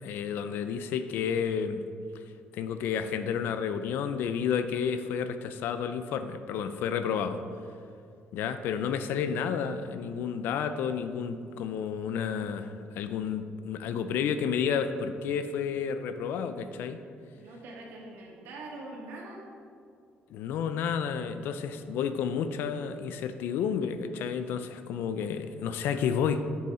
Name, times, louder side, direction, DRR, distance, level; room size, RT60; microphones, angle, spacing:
voice 1, 0.0-1.8 2.5-7.4 8.3-17.0 20.3-26.4, left 7 dB, 70° left, 10 dB, 0.5 m, -31 dB
voice 2, 17.3-19.5, right 2 dB, 80° right, -2 dB, 1.8 m, -43 dB
8.5 x 6.7 x 4.3 m, 2.3 s
cardioid pair, 170°, 4 cm